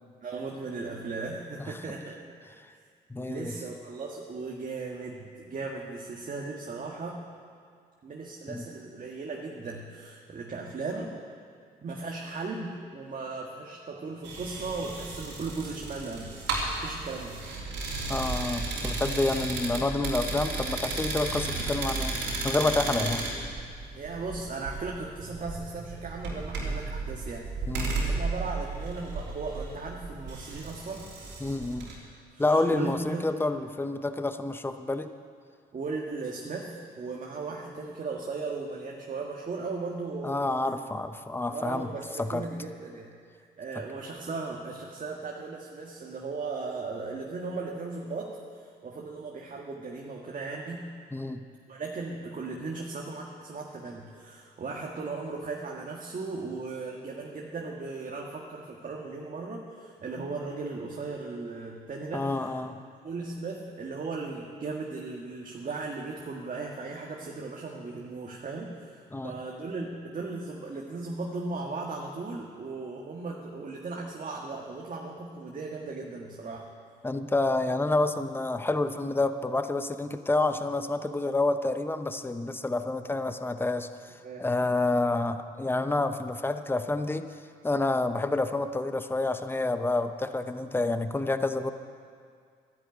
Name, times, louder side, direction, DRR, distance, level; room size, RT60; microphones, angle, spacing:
voice 1, 0.2-2.2 2.7-2.9 3.2-7.2 8.0-11.1 11.8-16.4 16.8-17.4 22.9-23.1 23.9-27.5 28.1-31.1 32.3-33.3 35.7-40.4 41.5-43.1 43.6-50.9 51.7-62.6 63.0-76.7 84.2-84.5, right 3 dB, 45° right, -2 dB, 1.9 m, -37 dB
voice 2, 3.1-3.5 8.5-8.7 18.1-22.2 22.4-23.2 27.7-28.0 31.4-31.9 32.4-35.1 40.2-41.9 42.2-42.4 51.1-51.4 62.1-62.8 69.1-69.3 77.0-83.9 84.4-87.3 87.6-91.7, left 2 dB, 10° left, 9 dB, 0.9 m, -28 dB
sound 1, 14.2-32.0, right 3 dB, 90° right, 3.5 m, -34 dB
13.0 x 10.5 x 9.3 m, 2.2 s
supercardioid pair, 70°, 18 cm